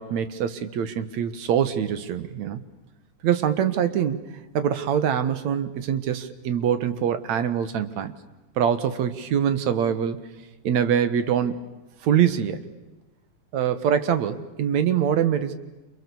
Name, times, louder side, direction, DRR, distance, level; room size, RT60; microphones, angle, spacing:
voice 1, 0.0-2.6 3.2-4.2 4.5-8.1 8.6-10.2 10.6-11.7 12.0-12.6 13.5-15.6, right 8 dB, 70° right, 11 dB, 2.7 m, -24 dB
28.5 x 28.5 x 7.1 m, 1.1 s
omnidirectional pair, 3.4 m